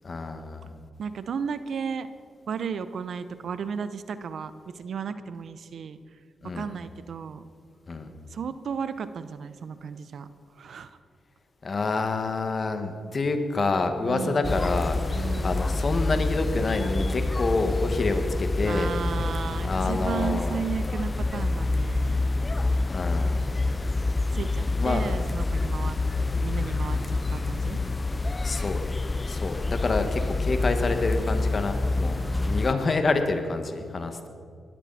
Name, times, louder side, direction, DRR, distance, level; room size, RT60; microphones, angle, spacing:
voice 1, 0.0-0.7 6.4-6.7 7.9-8.1 11.6-18.9 19.6-20.6 22.9-23.4 24.8-25.1 28.4-28.8 29.2-32.2 32.5-34.3, left 3 dB, 45° left, 6 dB, 1.8 m, -27 dB
voice 2, 1.0-2.1 2.5-6.2 6.5-7.4 8.3-10.3 10.5-11.0 14.0-14.7 15.1-15.7 18.6-22.3 24.3-26.0 26.4-27.8 32.2-32.7, right 6 dB, 70° right, 13 dB, 0.7 m, -34 dB
sound 1, 14.4-32.7, left 2 dB, 30° left, 0.4 m, -27 dB
19.5 x 13.0 x 4.2 m, 2.2 s
supercardioid pair, 55°, 0 cm